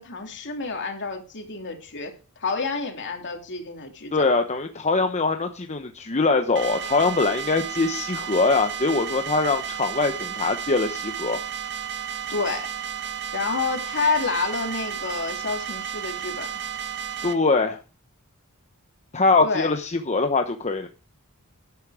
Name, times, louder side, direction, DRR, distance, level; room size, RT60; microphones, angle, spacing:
voice 1, 0.0-2.1 2.4-4.3 12.3-12.7 13.3-16.6 19.4-19.7, left 4 dB, 55° left, 3 dB, 2.9 m, -29 dB
voice 2, 4.1-11.4 17.2-17.8 19.1-20.9, left 3 dB, 30° left, 5 dB, 1.0 m, -23 dB
sound 1, 6.6-17.3, right 9 dB, 55° right, 1.7 m, -33 dB
12.0 x 10.5 x 4.9 m, 0.35 s
head